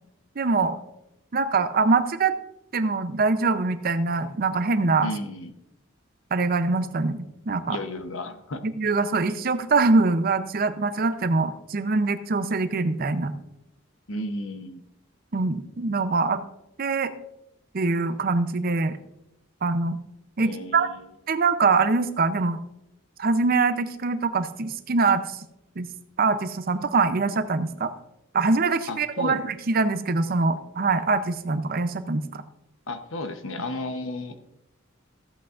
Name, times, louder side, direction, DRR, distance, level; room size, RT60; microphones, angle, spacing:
voice 1, 0.4-0.8 1.3-2.3 2.7-5.1 6.3-7.2 7.5-7.8 8.8-13.3 15.3-16.4 16.8-17.1 17.7-19.0 19.6-20.0 20.4-20.9 21.3-22.6 23.2-25.4 25.8-25.9 26.2-27.9 28.3-32.4, right 3 dB, 45° right, 12 dB, 0.6 m, -23 dB
voice 2, 5.0-5.5 7.7-8.6 14.1-14.8 20.4-21.1 28.9-29.4 32.9-34.3, left 1 dB, 80° left, 8 dB, 0.9 m, -33 dB
15.0 x 8.2 x 2.5 m, 0.85 s
head